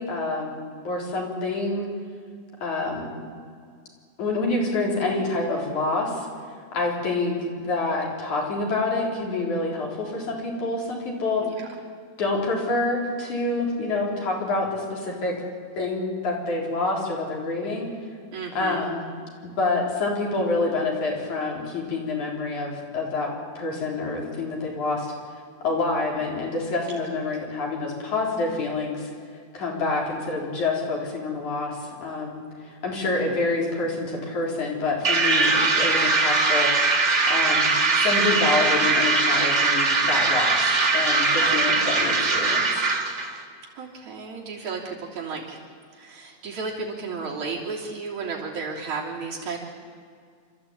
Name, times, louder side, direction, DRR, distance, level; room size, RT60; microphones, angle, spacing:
voice 1, 0.0-1.9 2.6-3.1 4.2-6.3 6.7-11.5 12.2-15.3 15.8-17.9 18.6-19.0 19.4-23.3 23.6-25.1 25.6-29.1 29.5-36.7 37.3-37.7 38.0-42.9, left 3 dB, 90° left, -1 dB, 5.3 m, -27 dB
voice 2, 18.3-18.8 33.0-33.8 40.9-41.1 41.4-42.1 43.8-45.6 45.9-49.6, right 4 dB, 80° right, -4 dB, 4.5 m, -34 dB
sound 1, 35.0-43.3, right 3 dB, 30° right, 1.7 m, -21 dB
27.5 x 13.5 x 8.7 m, 2.1 s
omnidirectional pair, 3.3 m